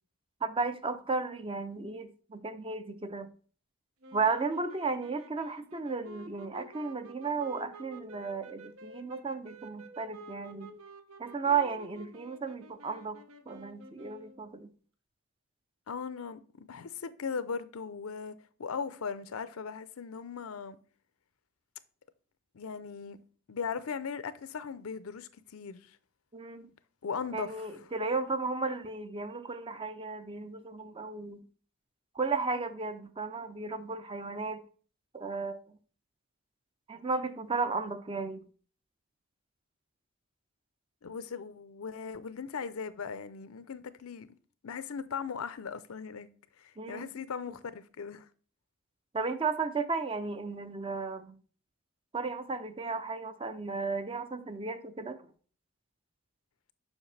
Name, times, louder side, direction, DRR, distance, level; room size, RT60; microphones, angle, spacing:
voice 1, 0.4-3.3 4.1-10.7 11.2-13.2 13.5-14.7 26.3-26.7 27.3-31.4 32.2-34.6 35.1-35.8 36.9-38.4 46.8-47.1 49.1-51.3 52.1-55.2, right 4 dB, 25° right, 0.5 m, -34 dB
sound 1, 4.0-14.5, right 1 dB, 85° right, 0.8 m, -51 dB
voice 2, 15.9-18.3 18.6-20.8 22.5-23.2 23.5-26.0 27.0-27.7 41.0-44.3 44.6-46.3 46.6-48.3, left 6 dB, 85° left, 0.5 m, -38 dB
7.2 x 5.7 x 3.3 m
head